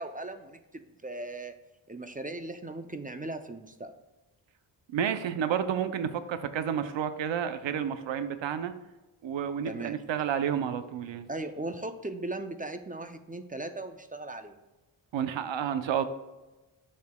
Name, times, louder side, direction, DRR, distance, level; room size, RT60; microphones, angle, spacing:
voice 1, 0.0-1.5 1.9-3.9 9.6-10.0 11.3-14.6, right 2 dB, 20° right, 8 dB, 0.3 m, -38 dB
voice 2, 4.9-8.7 9.2-11.3 15.1-16.0, right 8 dB, 75° right, 10 dB, 0.6 m, -30 dB
10.5 x 6.5 x 2.2 m, 1.1 s
wide cardioid pair, 155°, 46 cm